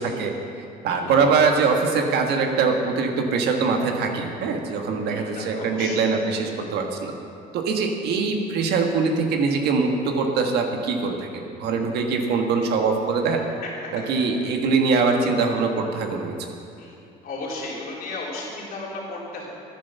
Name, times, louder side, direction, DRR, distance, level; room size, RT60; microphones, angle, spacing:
voice 1, 0.0-7.1 7.5-13.4 13.9-16.4, right 4 dB, 75° right, 3 dB, 1.5 m, -23 dB
voice 2, 5.0-6.0 13.6-14.1 16.8-16.9 17.2-19.5, left 2 dB, 60° left, -5 dB, 3.7 m, -34 dB
10.5 x 10.0 x 7.0 m, 2.6 s
cardioid pair, 110°, 17 cm